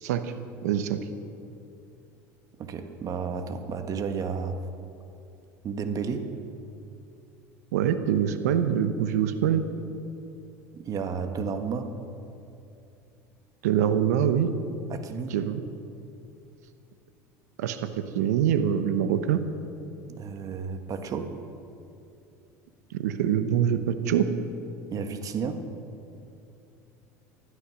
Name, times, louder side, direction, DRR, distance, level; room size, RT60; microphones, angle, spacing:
voice 1, 0.0-0.3 0.6-1.0 7.7-9.6 13.6-14.5 15.3-15.6 17.6-17.9 18.1-19.4 22.9-24.3, right 9 dB, 85° right, 10 dB, 1.0 m, -24 dB
voice 2, 2.6-4.7 5.6-6.4 10.7-12.0 14.9-15.4 20.2-21.4 24.9-25.7, right 5 dB, 45° right, 8 dB, 1.4 m, -32 dB
15.5 x 12.0 x 6.3 m, 2.7 s
supercardioid pair, 95°, 9 cm